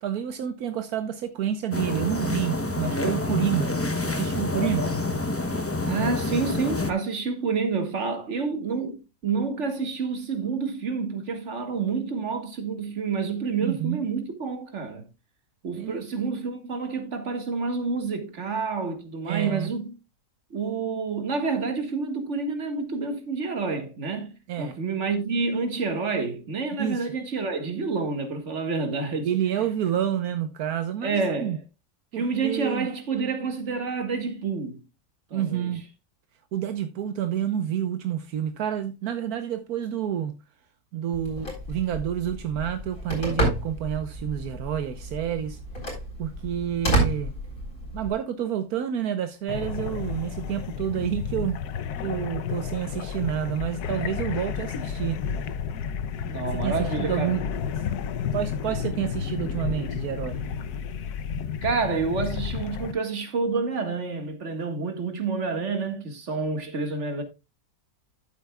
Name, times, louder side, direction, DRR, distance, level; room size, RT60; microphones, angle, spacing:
voice 1, 0.0-3.8 4.0-5.0 13.6-14.0 15.8-16.0 19.3-19.7 24.5-24.8 26.8-27.1 29.2-31.6 32.1-32.9 35.3-35.8 36.5-40.3 40.9-45.6 46.2-47.3 47.9-51.6 52.0-55.2 56.5-57.4 57.8-57.9 58.3-60.4, right 10 dB, 80° right, 1.3 m, -29 dB
sound 1, 1.7-6.9, left 2 dB, 15° left, 0.6 m, -27 dB
voice 2, 5.8-15.1 15.6-19.9 20.5-29.3 29.6-29.7 31.0-31.6 32.1-34.8 35.3-35.8 56.2-57.3 61.6-67.2, right 4 dB, 50° right, 2.0 m, -28 dB
Telephone, 41.1-48.1, right 1 dB, 60° left, 4.4 m, -30 dB
sound 2, 49.5-62.9, left 7 dB, 85° left, 1.3 m, -31 dB
12.5 x 8.5 x 2.3 m
omnidirectional pair, 1.6 m